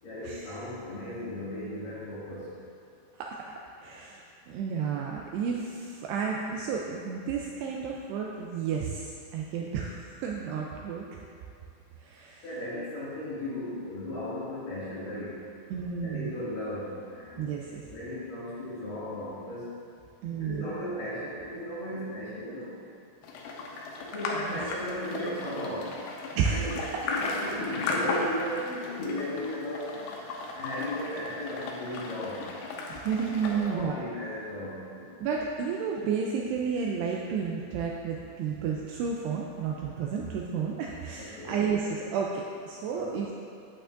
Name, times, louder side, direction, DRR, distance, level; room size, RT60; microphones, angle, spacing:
voice 1, 0.0-2.6 12.4-15.5 16.0-19.7 20.4-22.7 24.0-26.0 26.4-30.1 30.3-32.6 33.5-35.2 41.2-41.7 42.9-43.3, left 1 dB, 55° left, -10 dB, 3.5 m, -36 dB
voice 2, 3.8-11.0 12.0-12.4 15.7-16.3 17.4-17.8 20.2-20.7 24.5-24.6 26.4-26.8 32.9-34.0 35.2-41.8 42.1-43.3, right 6 dB, 80° right, -1 dB, 2.4 m, -31 dB
sound 1, 23.2-33.7, left 3 dB, 80° left, 2.9 m, -35 dB
11.0 x 8.9 x 2.5 m, 2.4 s
omnidirectional pair, 5.2 m